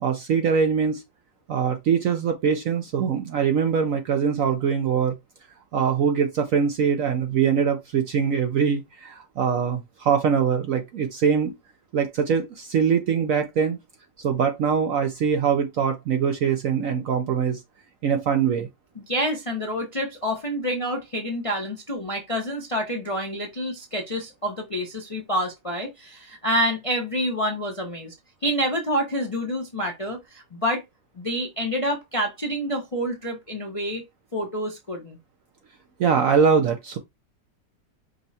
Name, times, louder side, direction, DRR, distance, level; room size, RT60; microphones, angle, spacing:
voice 1, 0.0-1.0 1.5-5.1 5.7-11.5 11.9-13.8 14.2-17.6 18.0-18.7 36.0-37.0, right 6 dB, 65° right, 0.8 m, -23 dB
voice 2, 19.0-28.1 28.4-30.8 31.2-34.0 34.3-35.2, equal, 35° left, 0.5 m, -28 dB
5.2 x 2.2 x 4.0 m
omnidirectional pair, 1.9 m